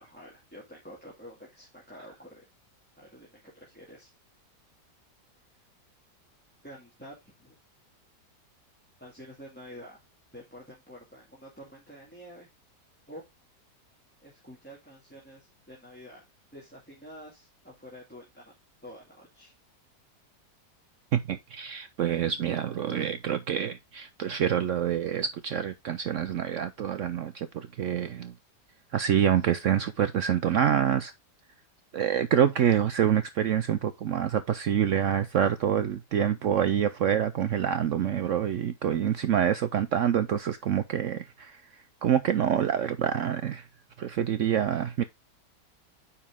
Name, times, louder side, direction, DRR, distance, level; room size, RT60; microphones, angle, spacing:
voice 1, 0.0-2.4 3.0-4.1 6.6-7.6 9.0-10.0 10.3-12.5 13.1-13.2 14.2-16.2 16.5-18.5 18.8-19.5, equal, 5° left, 2.2 m, -48 dB
voice 2, 21.1-28.3 28.9-31.1 31.9-43.7 44.0-45.0, right 9 dB, 65° right, 0.7 m, -26 dB
9.3 x 4.3 x 3.6 m
omnidirectional pair, 1.8 m